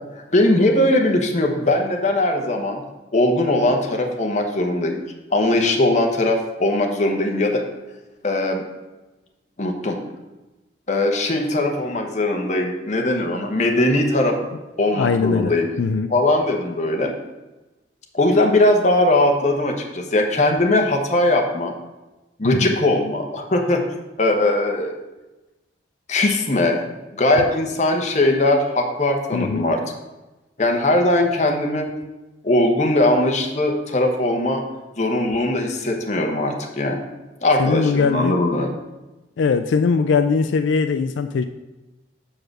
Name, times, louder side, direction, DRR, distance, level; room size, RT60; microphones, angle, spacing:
voice 1, 0.1-2.8 3.1-5.0 5.3-7.6 8.2-8.6 9.6-10.0 10.9-14.3 14.8-15.7 16.1-17.1 18.1-21.7 22.4-23.8 24.2-24.9 26.1-26.9 27.1-29.8 30.6-31.9 32.4-34.6 35.0-37.0 37.4-38.7, left 1 dB, 40° left, 2 dB, 1.0 m, -20 dB
voice 2, 15.0-15.5 15.8-16.1 22.4-22.7 29.3-29.6 37.6-38.4 39.4-41.4, left 5 dB, 85° left, 9 dB, 0.4 m, -20 dB
6.1 x 4.7 x 6.5 m, 1.1 s
head